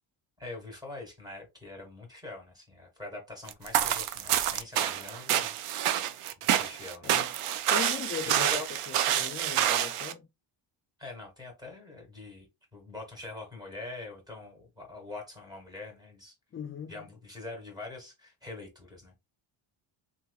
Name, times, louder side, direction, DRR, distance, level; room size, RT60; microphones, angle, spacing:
voice 1, 0.4-5.5 6.4-7.4 8.2-8.7 11.0-12.5 12.7-16.3 16.9-19.1, left 2 dB, 10° right, 1.5 m, -44 dB
sound 1, 3.5-10.1, right 11 dB, 85° right, 0.6 m, -28 dB
voice 2, 7.7-10.2 16.5-17.1, left 7 dB, 30° left, 0.3 m, -39 dB
3.9 x 2.9 x 2.3 m
cardioid pair, 145°, 49 cm